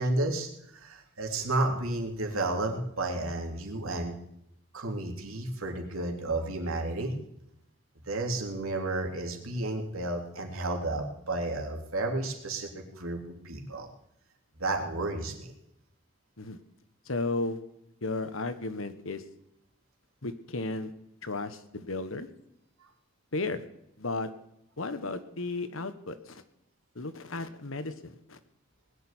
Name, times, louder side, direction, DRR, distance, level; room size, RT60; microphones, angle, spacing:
voice 1, 0.0-4.2 4.7-7.1 8.1-13.9 14.6-15.5, right 2 dB, 90° right, 2 dB, 3.1 m, -32 dB
voice 2, 17.1-17.6 18.0-19.2 20.2-20.9 21.2-22.3 23.3-23.6 24.0-24.3 24.8-26.4 26.9-28.4, left 3 dB, 75° left, 11 dB, 1.4 m, -34 dB
20.0 x 6.7 x 9.9 m, 0.79 s
head